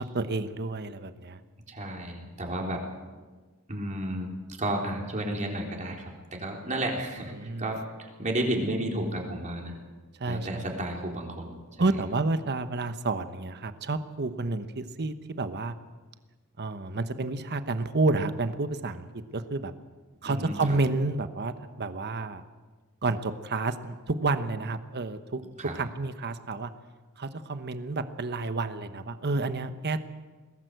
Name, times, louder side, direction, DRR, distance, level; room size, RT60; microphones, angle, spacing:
voice 1, 0.0-1.4 7.3-7.7 10.2-10.6 11.8-15.7 16.6-19.1 19.3-19.7 20.2-22.4 23.0-25.4 25.7-26.7 27.2-30.0, right 3 dB, 50° right, 10 dB, 1.1 m, -30 dB
voice 2, 1.7-2.8 3.7-4.3 4.6-7.3 7.6-9.7 10.3-11.9 20.2-20.8 25.6-25.7, right 1 dB, 35° right, 1 dB, 3.9 m, -32 dB
21.5 x 17.0 x 8.0 m, 1.4 s
head